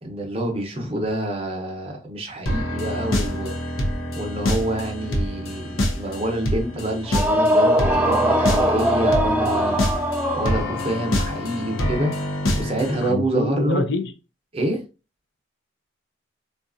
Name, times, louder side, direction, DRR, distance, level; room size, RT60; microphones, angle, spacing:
voice 1, 0.0-3.6 4.1-9.8 10.3-12.1 12.6-13.8 14.5-14.8, right 1 dB, 30° right, 0.7 m, -27 dB
sound 1, 2.5-13.1, left 1 dB, 85° left, 0.8 m, -26 dB
sound 2, 7.1-11.0, equal, 10° right, 0.3 m, -21 dB
voice 2, 13.0-14.1, left 2 dB, 55° left, 0.4 m, -25 dB
3.9 x 2.4 x 2.5 m
head